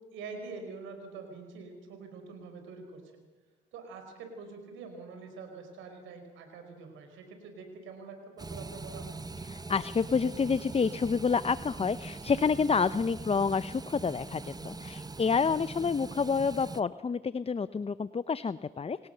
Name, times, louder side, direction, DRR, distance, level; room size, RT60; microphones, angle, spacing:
voice 1, 0.1-3.1 3.7-9.1, right 4 dB, 90° right, 6 dB, 4.9 m, -45 dB
sound 1, 8.4-16.8, right 3 dB, 20° right, 0.9 m, -42 dB
voice 2, 9.5-19.1, left 5 dB, 30° left, 15 dB, 0.7 m, -29 dB
29.0 x 18.0 x 6.8 m, 1.3 s
supercardioid pair, 60°, 19 cm